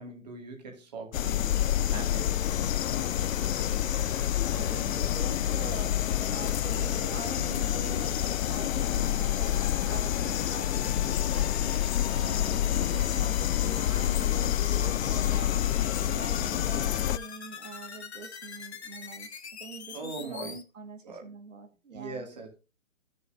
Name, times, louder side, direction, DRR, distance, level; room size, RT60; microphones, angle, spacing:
voice 1, 0.0-2.8 19.9-20.5 21.0-21.3 21.9-22.6, right 3 dB, 30° right, 2.2 m, -41 dB
sound 1, 1.1-17.2, left 11 dB, 85° left, 0.5 m, -28 dB
beam sawtooth, 2.1-20.6, left 6 dB, 55° left, 1.2 m, -45 dB
sound 2, 2.6-10.9, right 2 dB, 10° right, 0.8 m, -49 dB
voice 2, 4.5-22.3, right 5 dB, 70° right, 1.8 m, -44 dB
14.0 x 7.0 x 2.6 m
hypercardioid pair, 175°, 39 cm